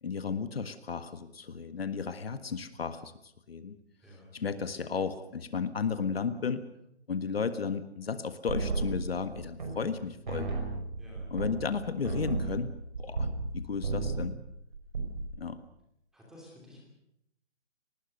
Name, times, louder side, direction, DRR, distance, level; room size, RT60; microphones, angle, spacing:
voice 1, 0.0-3.1 3.5-3.8 4.3-6.7 7.1-10.5 11.3-12.7 13.0-14.3 15.4-15.6, left 5 dB, 60° left, 11 dB, 1.6 m, -34 dB
sound 1, 8.5-10.0 10.3-13.5 13.8-14.4 14.7-15.3, right 3 dB, 45° right, 5.5 m, -33 dB
voice 2, 11.0-11.3 16.1-16.8, left 1 dB, ahead, -3 dB, 2.8 m, -52 dB
25.0 x 19.5 x 6.6 m, 0.78 s
hypercardioid pair, 175°, 34 cm